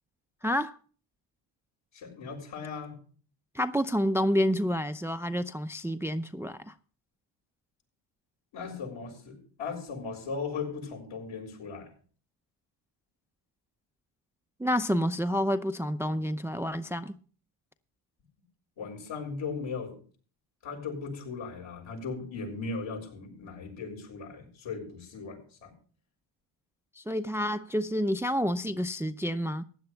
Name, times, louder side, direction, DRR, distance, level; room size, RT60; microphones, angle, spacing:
voice 1, 0.4-0.8 3.5-6.7 14.6-17.2 27.0-29.6, equal, 5° right, 0.6 m, -29 dB
voice 2, 1.9-3.0 8.5-11.9 18.8-19.9 20.6-25.7, left 4 dB, 70° left, 6.5 m, -38 dB
15.5 x 10.5 x 3.5 m
cardioid pair, 75°, 49 cm